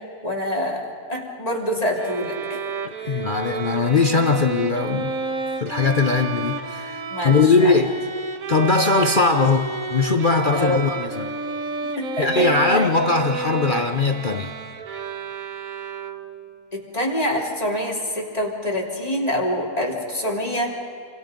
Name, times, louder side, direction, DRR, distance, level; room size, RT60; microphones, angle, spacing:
voice 1, 0.2-2.6 3.0-3.2 7.1-7.8 10.5-10.8 12.0-12.4 12.8-12.9 16.7-20.7, equal, 25° left, -2 dB, 3.5 m, -26 dB
Bowed string instrument, 2.0-16.5, right 4 dB, 70° right, 1.7 m, -30 dB
voice 2, 3.1-5.2 5.6-8.0 8.5-11.3 12.2-14.5, left 4 dB, 40° left, 6 dB, 0.9 m, -20 dB
29.5 x 24.5 x 5.3 m, 2.5 s
omnidirectional pair, 1.5 m